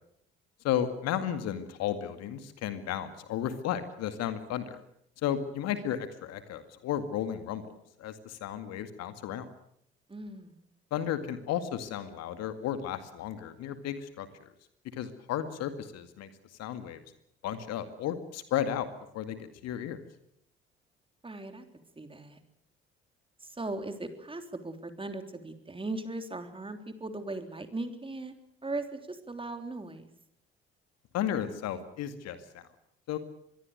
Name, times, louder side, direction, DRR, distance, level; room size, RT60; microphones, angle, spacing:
voice 1, 0.6-4.8 5.2-9.5 10.9-14.5 14.9-16.3 16.6-17.0 17.4-18.9 19.1-20.0 31.1-32.7 33.1-33.2, left 10 dB, 55° left, 10 dB, 2.2 m, -33 dB
voice 2, 10.1-10.6 21.2-21.6 22.0-22.4 23.4-28.3 28.6-30.1, right 2 dB, 15° right, 7 dB, 3.5 m, -38 dB
25.5 x 22.0 x 6.6 m, 0.73 s
figure-of-eight pair, 50°, 30 cm